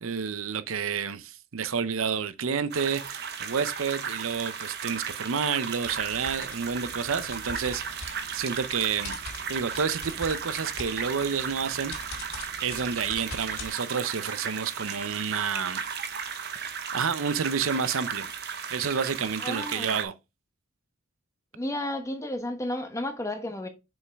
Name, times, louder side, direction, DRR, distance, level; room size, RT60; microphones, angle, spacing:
voice 1, 0.0-9.2 9.5-11.9 12.6-15.9 16.9-18.3 18.7-20.1, right 6 dB, 75° right, 0.6 m, -29 dB
sound 1, 2.7-20.0, right 6 dB, 50° right, 1.1 m, -35 dB
sound 2, 5.8-13.7, left 2 dB, 90° left, 3.3 m, -43 dB
voice 2, 19.4-20.0 21.5-23.7, left 1 dB, 15° left, 1.1 m, -32 dB
6.4 x 5.3 x 3.5 m
head